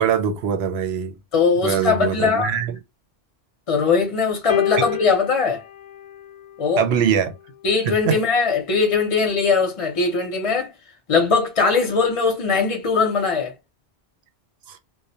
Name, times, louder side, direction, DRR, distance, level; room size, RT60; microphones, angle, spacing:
voice 1, 0.0-1.2 1.6-2.8 4.8-4.9 6.8-7.3 7.9-8.2 14.7-14.8, right 8 dB, 90° right, 0.8 m, -22 dB
voice 2, 1.3-2.5 3.7-5.6 6.6-6.9 7.6-10.7 11.1-13.5, left 5 dB, 40° left, 0.5 m, -20 dB
sound 1, 4.5-7.0 8.0-8.2, left 10 dB, 75° left, 0.8 m, -28 dB
2.3 x 2.1 x 2.7 m
omnidirectional pair, 1.0 m